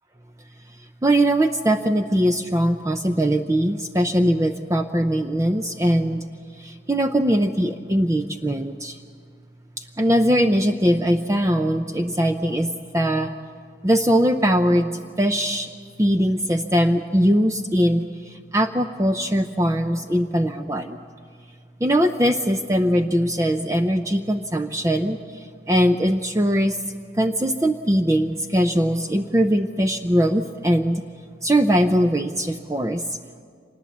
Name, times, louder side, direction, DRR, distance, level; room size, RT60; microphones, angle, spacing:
voice 1, 1.0-6.2 6.6-9.0 10.0-13.3 13.8-14.9 15.2-15.7 16.0-21.0 21.8-26.8 27.2-31.0 31.4-33.0, equal, 15° right, 6 dB, 0.5 m, -21 dB
25.5 x 20.0 x 7.3 m, 2.1 s
head